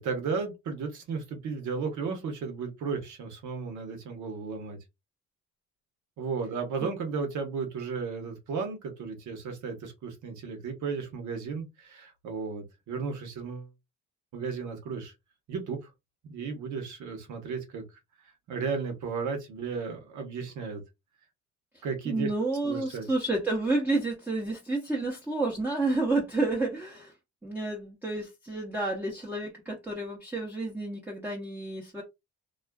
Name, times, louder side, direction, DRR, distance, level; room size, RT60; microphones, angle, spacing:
voice 1, 0.0-4.8 6.2-13.7 14.3-15.1 15.5-15.9 16.2-17.8 18.2-20.8 21.8-22.3 22.6-23.1, right 5 dB, 75° right, 0.9 m, -34 dB
voice 2, 22.1-27.1 27.4-32.0, right 2 dB, 5° right, 0.6 m, -30 dB
2.4 x 2.3 x 2.2 m
cardioid pair, 90°, 30 cm